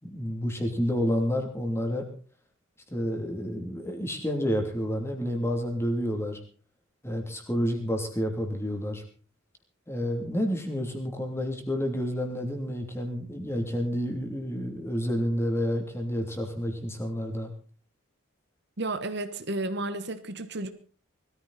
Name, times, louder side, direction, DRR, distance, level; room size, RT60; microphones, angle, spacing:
voice 1, 0.0-2.0 2.9-6.4 7.0-9.0 9.9-17.5, equal, 10° left, 4 dB, 2.8 m, -29 dB
voice 2, 18.8-20.7, right 2 dB, 55° right, 10 dB, 1.2 m, -32 dB
20.5 x 14.0 x 4.1 m, 0.39 s
head